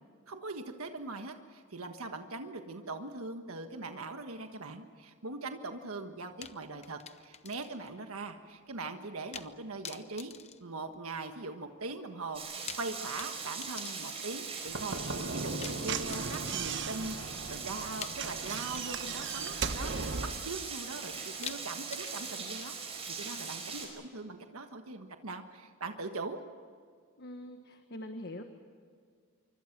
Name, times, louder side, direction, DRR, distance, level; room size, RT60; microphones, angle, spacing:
voice 1, 0.3-10.3 10.6-20.1 20.4-22.8 23.1-26.4, right 3 dB, 85° right, 6 dB, 1.5 m, -41 dB
sound 1, 6.4-7.9 8.2-8.3 9.3-9.6 9.8-11.4 12.4-14.6 15.6-16.8 18.0-19.9 21.4-22.8, left 8 dB, 30° left, 0.8 m, -47 dB
Rain, 12.3-23.9, right 5 dB, 30° right, 5.5 m, -41 dB
Slam / Knock, 14.7-20.5, right 4 dB, 55° right, 1.1 m, -37 dB
voice 2, 27.2-28.4, left 1 dB, 50° left, 6 dB, 1.5 m, -43 dB
26.0 x 24.0 x 6.1 m, 2.1 s
head